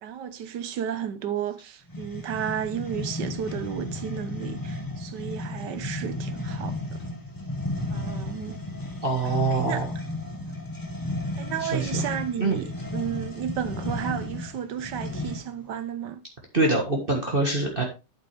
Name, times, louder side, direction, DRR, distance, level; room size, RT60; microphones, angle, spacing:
voice 1, 0.0-7.0 7.9-8.6 9.5-9.8 11.4-16.2, right 9 dB, 80° right, 1.5 m, -33 dB
sound 1, 1.9-15.6, left 1 dB, 15° left, 1.1 m, -33 dB
voice 2, 9.0-9.9 11.6-12.0 12.4-12.6 16.5-17.8, right 3 dB, 30° right, 1.7 m, -24 dB
9.0 x 8.0 x 3.3 m
omnidirectional pair, 1.9 m